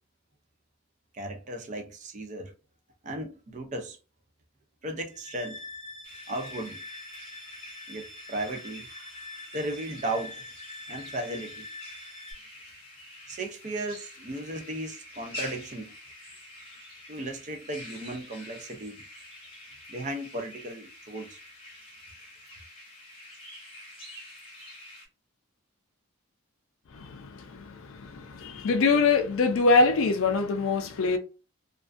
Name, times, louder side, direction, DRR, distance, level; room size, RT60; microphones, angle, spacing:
voice 1, 1.1-2.5 3.0-4.0 4.8-5.6 6.3-6.8 7.9-8.9 9.5-10.4 10.9-11.7 13.3-15.9 17.1-19.0 19.9-21.4, right 1 dB, 35° right, 0.4 m, -35 dB
sound 1, 5.1-12.3, left 2 dB, 55° right, 1.2 m, -44 dB
sound 2, 6.0-25.1, left 1 dB, 25° left, 0.8 m, -47 dB
voice 2, 26.9-31.2, left 3 dB, 70° left, 0.4 m, -24 dB
2.4 x 2.2 x 2.4 m
head